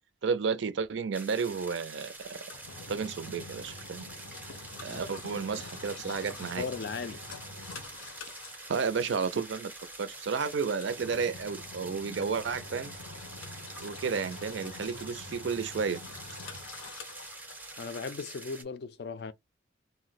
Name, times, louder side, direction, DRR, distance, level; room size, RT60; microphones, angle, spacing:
voice 1, 0.2-2.4 2.9-4.1 4.8-6.7 8.7-9.7 10.0-12.9 13.8-16.0, right 5 dB, 65° right, 0.4 m, -32 dB
sound 1, 1.1-18.6, right 2 dB, 10° right, 0.5 m, -46 dB
Engine, 1.9-18.0, left 3 dB, 90° left, 0.7 m, -47 dB
voice 2, 6.6-7.2 17.8-19.3, left 5 dB, 55° left, 0.4 m, -37 dB
2.5 x 2.0 x 3.9 m
head